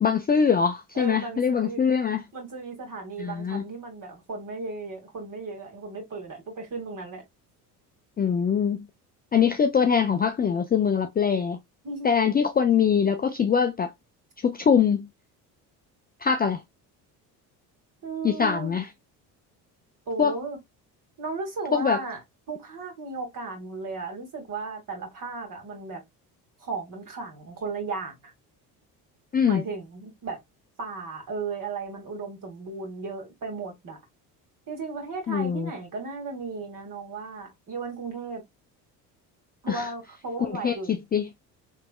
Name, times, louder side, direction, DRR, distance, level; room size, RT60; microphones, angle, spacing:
voice 1, 0.0-2.2 3.2-3.6 8.2-8.8 9.3-11.6 12.0-13.9 14.4-15.1 16.2-16.6 18.2-18.9 20.2-20.3 21.7-22.0 29.3-29.6 35.3-35.7 39.7-39.9 40.4-41.2, left 7 dB, 20° left, 0.4 m, -23 dB
voice 2, 0.9-1.8 2.3-7.2 11.8-12.1 18.0-18.8 20.1-20.6 21.2-22.2 22.5-26.0 26.6-28.3 29.5-30.4 30.8-34.0 34.7-38.4 39.6-41.0, right 4 dB, 40° right, 2.1 m, -35 dB
3.4 x 3.4 x 2.2 m
hypercardioid pair, 65°, 47 cm